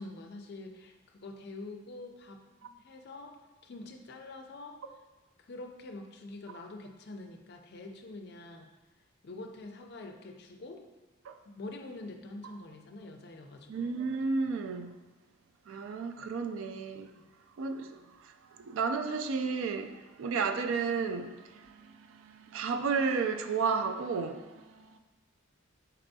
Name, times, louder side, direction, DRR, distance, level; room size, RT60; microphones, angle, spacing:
voice 1, 0.0-3.4 3.6-4.8 5.4-8.7 9.2-10.8 11.5-13.9 17.1-17.3, left 2 dB, 50° left, 0.4 m, -45 dB
voice 2, 13.7-14.9 15.7-17.1 17.6-18.0 18.2-21.7 22.1-25.0, right 5 dB, 75° right, 0.3 m, -32 dB
4.4 x 4.0 x 2.7 m
head